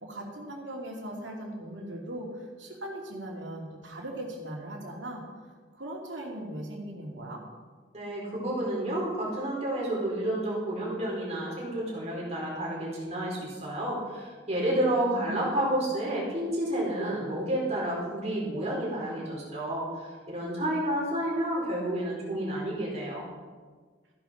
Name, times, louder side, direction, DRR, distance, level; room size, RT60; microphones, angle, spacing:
voice 1, 0.0-5.2 5.7-7.4 14.8-15.6, right 1 dB, 80° right, 0 dB, 2.7 m, -39 dB
voice 2, 7.9-23.2, right 1 dB, 35° right, -5 dB, 4.4 m, -30 dB
14.5 x 10.5 x 4.6 m, 1.5 s
head